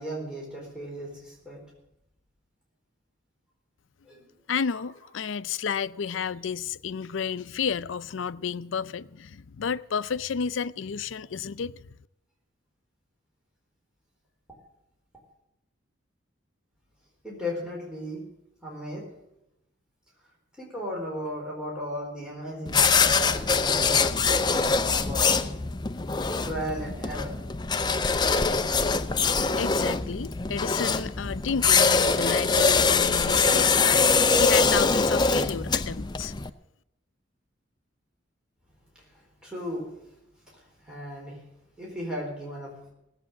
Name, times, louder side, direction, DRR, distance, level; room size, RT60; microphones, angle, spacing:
voice 1, 0.0-1.6 4.0-4.3 17.2-18.2 18.6-19.0 20.6-25.6 26.2-27.4 38.9-40.1 40.5-41.4 41.8-42.8, equal, 5° right, 4.2 m, -36 dB
voice 2, 4.5-11.9 29.6-36.3, left 6 dB, 75° left, 0.5 m, -31 dB
sound 1, 22.7-36.5, left 4 dB, 20° left, 0.5 m, -23 dB
18.0 x 8.2 x 7.5 m
head